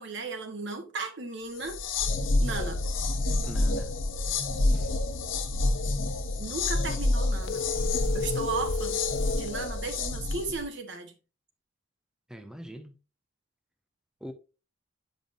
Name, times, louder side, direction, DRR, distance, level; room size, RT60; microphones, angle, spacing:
voice 1, 0.0-1.8 2.4-2.8 6.4-7.6 8.1-9.0 9.4-11.1, right 3 dB, 65° right, 1.1 m, -35 dB
sound 1, 1.6-10.6, left 2 dB, 90° left, 0.9 m, -28 dB
voice 2, 3.4-3.9 4.7-4.9 12.3-13.0 14.2-14.3, equal, 5° right, 0.6 m, -42 dB
sound 2, 7.4-9.5, left 4 dB, 60° left, 0.4 m, -33 dB
7.6 x 5.3 x 2.5 m
head